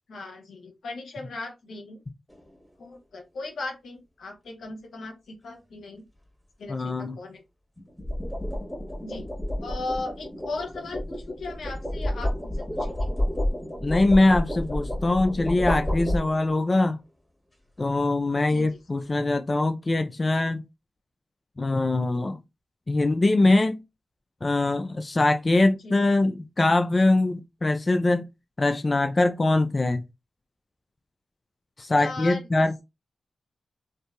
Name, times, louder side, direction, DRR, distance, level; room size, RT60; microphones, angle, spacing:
voice 1, 0.1-2.0 2.8-6.0 6.6-7.4 9.0-9.3 9.6-13.1 18.5-18.7 25.8-26.0 32.0-32.4, left 3 dB, 80° left, 0.7 m, -37 dB
sound 1, 2.3-2.6 7.8-16.7, left 1 dB, ahead, 1.4 m, -30 dB
voice 2, 6.7-7.2 13.8-17.0 17.8-20.6 21.6-22.4 22.9-23.8 24.4-28.3 28.6-30.0 31.8-32.8, left 2 dB, 40° left, 0.3 m, -22 dB
2.7 x 2.6 x 2.2 m
cardioid pair, 45°, 0 cm